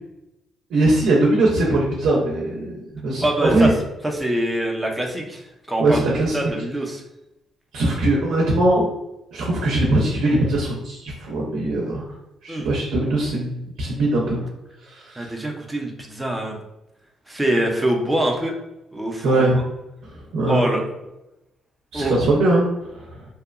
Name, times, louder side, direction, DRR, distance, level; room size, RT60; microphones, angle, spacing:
voice 1, 0.7-3.7 5.8-6.4 7.7-8.9 9.3-12.0 12.4-14.4 14.9-15.3 19.2-19.6 20.3-20.7 21.9-22.7 23.0-23.1, right 2 dB, 80° right, -2 dB, 0.5 m, -20 dB
voice 2, 3.2-3.7 4.0-5.4 5.7-6.0 6.3-7.0 12.5-12.7 15.2-16.6 17.3-18.5 18.9-19.6 20.5-20.8 21.9-22.2, right 1 dB, 10° right, 0 dB, 0.5 m, -24 dB
2.7 x 2.1 x 2.4 m, 0.93 s
cardioid pair, 90°, 0 cm